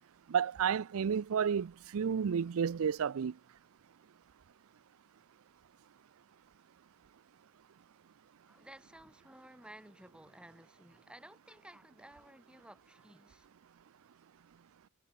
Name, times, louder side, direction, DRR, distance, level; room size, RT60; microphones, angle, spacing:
voice 1, 0.3-3.3, right 7 dB, 70° right, 0.4 m, -31 dB
voice 2, 8.5-13.5, right 1 dB, 5° right, 7.8 m, -55 dB
head